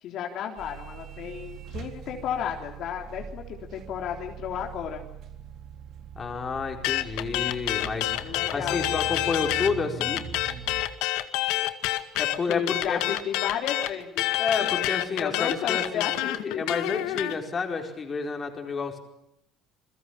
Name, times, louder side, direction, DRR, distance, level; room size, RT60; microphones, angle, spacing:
voice 1, 0.0-5.0 8.2-8.9 12.5-14.3 14.6-14.7 15.2-16.6, left 9 dB, 55° left, 2 dB, 3.6 m, -33 dB
sound 1, 0.6-10.8, right 7 dB, 50° right, 3.7 m, -42 dB
voice 2, 6.1-10.2 12.2-13.0 14.4-19.0, left 4 dB, 25° left, 3 dB, 4.7 m, -30 dB
sound 2, 6.8-9.7 10.0-17.3, left 16 dB, 90° left, 1.9 m, -27 dB
29.0 x 22.5 x 7.3 m, 0.79 s
cardioid pair, 150°, 0 cm